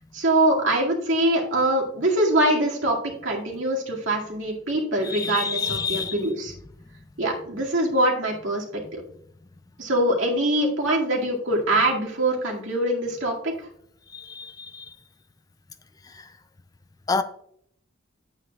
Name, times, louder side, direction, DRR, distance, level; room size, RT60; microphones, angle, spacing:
voice 1, 0.1-6.5 7.2-8.6 8.9-9.0 9.8-13.5, right 1 dB, 70° right, 2.2 m, -23 dB
voice 2, 5.1-6.1 14.1-14.9 17.1-17.2, left 5 dB, 20° left, 0.4 m, -28 dB
9.6 x 8.7 x 2.4 m
head